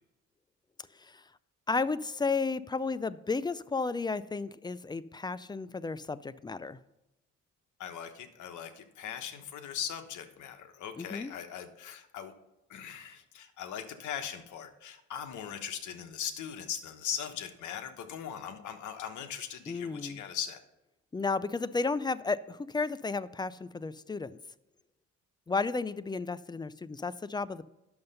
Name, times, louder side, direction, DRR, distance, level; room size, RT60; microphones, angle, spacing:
voice 1, 1.7-6.8 11.0-11.3 19.7-20.2 21.1-24.4 25.5-27.7, left 4 dB, 15° left, 17 dB, 0.3 m, -33 dB
voice 2, 7.8-12.3 12.7-20.6, left 8 dB, 75° left, 8 dB, 1.1 m, -40 dB
9.7 x 6.6 x 5.4 m, 0.91 s
cardioid pair, 90°, 30 cm